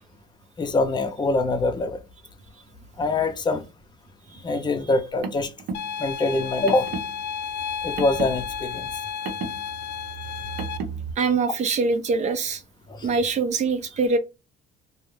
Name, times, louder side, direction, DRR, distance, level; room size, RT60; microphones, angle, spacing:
voice 1, 0.6-2.0 3.0-3.7 4.4-5.5 6.0-6.9 7.8-8.9 12.9-13.1, left 2 dB, 25° left, 0.5 m, -24 dB
Car, 4.9-11.1, right 4 dB, 80° right, 0.7 m, -35 dB
sound 1, 5.7-10.8, left 8 dB, 80° left, 0.4 m, -32 dB
voice 2, 11.2-12.6 13.0-14.2, right 4 dB, 45° right, 0.5 m, -23 dB
2.4 x 2.0 x 3.1 m
cardioid pair, 110°, 17 cm